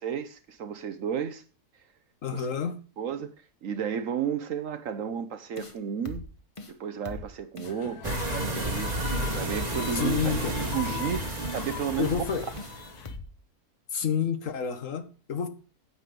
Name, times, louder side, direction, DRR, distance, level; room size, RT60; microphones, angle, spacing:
voice 1, 0.0-1.4 2.3-2.5 3.0-3.3 3.6-6.2 6.7-12.2, right 8 dB, 60° right, 1.1 m, -33 dB
voice 2, 2.2-2.8 9.9-10.6 12.0-12.5 13.9-15.5, left 7 dB, 55° left, 1.5 m, -29 dB
sound 1, 5.6-5.8 6.1-6.3 6.6-6.7 7.1-7.3 7.6-7.7 8.1-8.3 8.6-8.7 9.1-9.3 9.6-9.7 10.1-10.3 10.6-10.7 11.1-11.3 11.6-11.7 12.1-12.3 12.6-12.7 13.1-13.3, left 3 dB, 25° left, 0.8 m, -40 dB
sound 2, 7.6-13.2, left 11 dB, 85° left, 1.4 m, -41 dB
sound 3, 8.0-13.0, right 2 dB, 25° right, 1.3 m, -32 dB
9.2 x 7.9 x 5.2 m
omnidirectional pair, 1.6 m